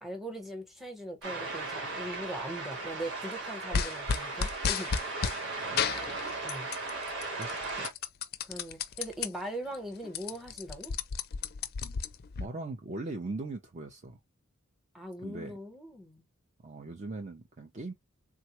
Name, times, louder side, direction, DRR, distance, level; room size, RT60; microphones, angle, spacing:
voice 1, 0.0-4.9 6.4-6.7 8.4-10.9 14.9-16.2, right 1 dB, ahead, 0.9 m, -40 dB
sound 1, 1.2-7.9, right 3 dB, 60° right, 1.3 m, -37 dB
sound 2, 3.7-5.4 5.8-6.9 7.2-9.3 9.7-9.8 10.0-12.5, left 6 dB, 50° left, 0.4 m, -32 dB
voice 2, 5.7-6.0 7.4-7.9 12.4-14.2 15.2-15.6 16.6-17.9, right 2 dB, 35° right, 0.5 m, -40 dB
3.6 x 2.2 x 2.9 m
head